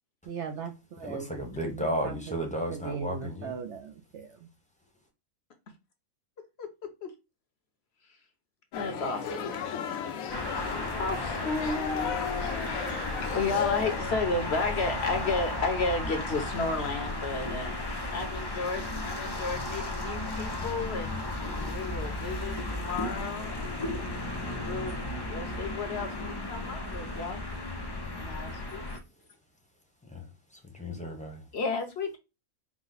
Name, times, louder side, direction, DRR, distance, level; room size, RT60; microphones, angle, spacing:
voice 1, 0.2-1.3 1.6-2.4 2.7-4.5, right 6 dB, 65° right, 0.8 m, -38 dB
voice 2, 1.0-3.6 30.0-31.5, equal, 5° left, 0.7 m, -34 dB
voice 3, 6.6-7.1 8.7-9.5 10.9-12.1 12.5-17.8 18.1-23.8 24.4-27.4 28.2-28.8 31.5-32.2, left 3 dB, 55° left, 0.9 m, -33 dB
sound 1, 8.7-14.0, left 7 dB, 80° left, 1.1 m, -35 dB
sound 2, 10.3-29.0, left 2 dB, 40° left, 0.3 m, -34 dB
4.8 x 2.1 x 4.0 m
omnidirectional pair, 1.4 m